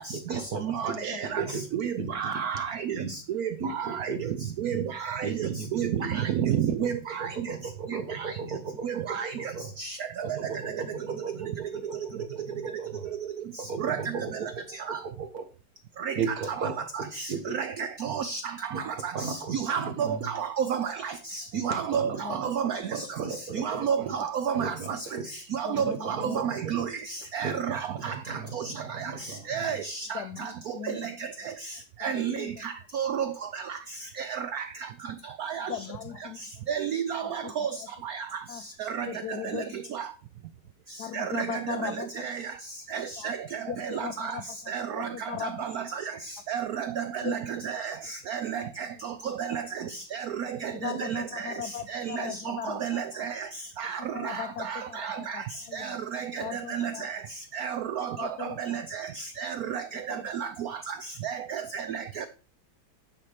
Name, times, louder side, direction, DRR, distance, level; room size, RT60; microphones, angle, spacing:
voice 1, 0.1-3.1 3.6-4.9 5.2-9.7 10.2-13.1 13.6-15.4 16.1-18.1 18.7-20.3 21.5-24.1 24.5-26.8 27.4-29.8, right 5 dB, 55° right, 8 dB, 1.4 m, -36 dB
voice 2, 0.6-1.4 1.7-2.9 3.3-3.5 3.8-4.1 4.6-7.3 8.8-9.3 9.8-9.9 10.3-10.4 13.9-14.0 14.9-15.0 16.1-16.2 17.6-18.4 19.7-20.1 20.4-22.0 22.3-22.8 23.6-24.7 25.5-26.8 27.3-28.1 29.5-30.1 32.0-32.3 32.9-33.3 34.5-34.6 35.4-35.7 36.7-37.7 39.0-39.1 39.5-39.6 39.9-40.0 41.1-41.5 41.8-41.9 42.2-42.4 42.9-43.4 43.9-44.3 44.7-45.1 45.6-45.7 46.5-47.4 47.6-47.9 48.3-48.9 49.4-49.6 50.1-50.2 50.6-51.2 51.9-53.3 53.8-55.2 55.7-56.4 56.7-57.1 57.5-58.3 58.7-58.8 59.4-59.8 60.1-60.2 61.2-61.3 61.7-62.2, right 8 dB, 80° right, 11 dB, 0.8 m, -30 dB
voice 3, 25.7-26.4 30.1-31.0 32.1-32.7 35.7-36.4 37.2-37.7 38.5-38.6 39.1-39.8 41.0-42.2 43.2-43.3 43.7-45.7 47.2-47.4 50.7-53.3 54.0-56.0 56.4-57.1 58.2-58.8 60.1-60.3, left 10 dB, 80° left, 10 dB, 0.9 m, -38 dB
10.5 x 4.4 x 4.9 m, 0.36 s
omnidirectional pair, 2.3 m